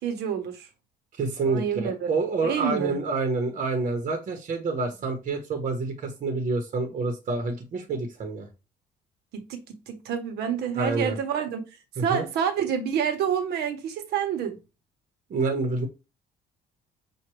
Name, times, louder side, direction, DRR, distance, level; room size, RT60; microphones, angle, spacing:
voice 1, 0.0-0.7 1.4-2.1 2.4-3.0 9.3-11.6 12.0-14.6, right 8 dB, 75° right, 1.1 m, -28 dB
voice 2, 1.2-8.5 10.7-11.2 12.1-12.3 15.3-15.9, right 3 dB, 50° right, 1.1 m, -28 dB
6.0 x 2.5 x 3.1 m
cardioid pair, 110°, 17 cm